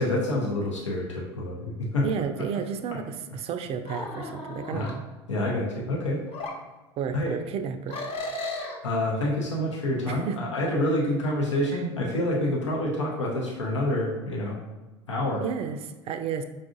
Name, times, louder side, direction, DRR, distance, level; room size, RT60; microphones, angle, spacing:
voice 1, 0.0-2.0 4.7-4.9 5.3-6.2 7.1-7.4 8.8-14.6 15.1-15.4, left 1 dB, 90° left, -2 dB, 0.7 m, -27 dB
voice 2, 2.0-5.0 7.0-8.1 10.1-10.4 11.7-11.8 15.4-16.4, right 7 dB, 40° right, 8 dB, 0.4 m, -32 dB
sound 1, 3.9-4.9 6.3-6.5 7.9-8.8, left 2 dB, 40° left, 0.9 m, -34 dB
5.1 x 2.4 x 2.5 m, 1.2 s
hypercardioid pair, 80°, 15 cm